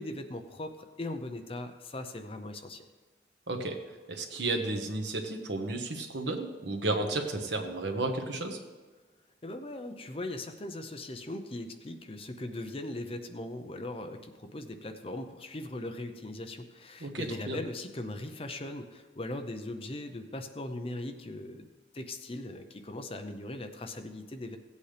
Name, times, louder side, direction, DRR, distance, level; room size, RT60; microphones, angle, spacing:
voice 1, 0.0-2.9 9.4-21.7 21.9-24.6, left 1 dB, 30° left, 7 dB, 0.6 m, -39 dB
voice 2, 3.5-3.8 4.1-8.6 17.0-17.6, right 2 dB, 75° right, 4 dB, 1.2 m, -32 dB
16.0 x 8.3 x 3.4 m, 1.3 s
head